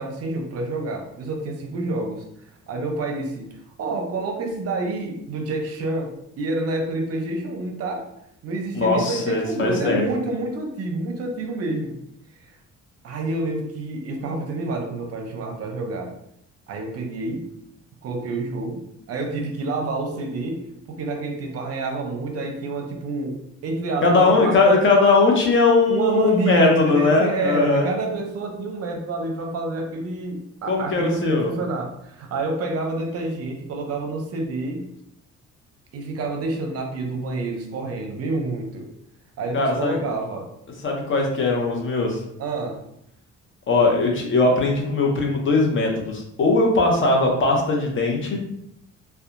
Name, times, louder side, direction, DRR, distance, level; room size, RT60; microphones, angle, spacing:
voice 1, 0.0-2.3 2.7-8.1 8.4-11.9 12.4-12.5 13.0-16.1 16.7-17.5 18.0-24.7 25.9-34.9 35.9-38.9 39.4-40.5 42.4-42.8, right 2 dB, 55° right, 3 dB, 0.6 m, -28 dB
voice 2, 8.7-10.0 24.0-27.9 30.7-31.5 39.5-40.0 40.8-42.2 43.7-48.4, left 3 dB, 40° left, 1 dB, 0.7 m, -19 dB
2.7 x 2.2 x 2.5 m, 0.77 s
cardioid pair, 105°, 30 cm